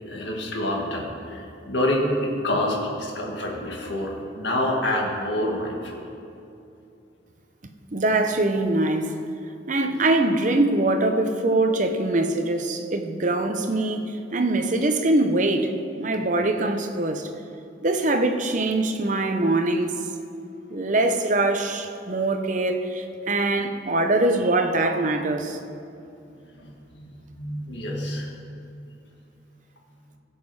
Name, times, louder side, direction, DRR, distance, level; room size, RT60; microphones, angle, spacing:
voice 1, 0.0-6.0 26.6-28.3, left 1 dB, 65° left, -1 dB, 1.8 m, -27 dB
voice 2, 7.9-9.2 9.7-15.7 16.0-17.3 17.8-20.0 20.7-25.6, right 2 dB, 40° right, 6 dB, 0.8 m, -23 dB
16.0 x 7.5 x 4.8 m, 2.6 s
head